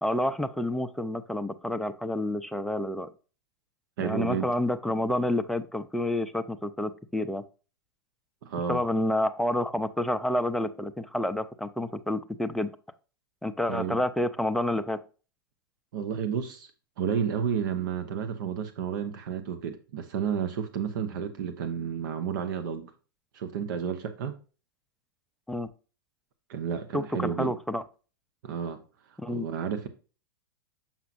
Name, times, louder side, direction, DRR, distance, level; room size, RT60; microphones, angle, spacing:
voice 1, 0.0-3.1 4.0-7.4 8.7-12.7 13.4-15.0 25.5-25.7 26.9-27.8 29.2-29.5, left 1 dB, ahead, 0.5 m, -29 dB
voice 2, 4.0-4.5 8.4-8.8 13.7-14.0 15.9-16.7 17.0-22.9 23.3-24.4 26.5-27.5 28.4-28.8 29.3-29.9, right 7 dB, 60° right, 0.9 m, -31 dB
7.2 x 5.8 x 2.5 m
hypercardioid pair, 100°, 12 cm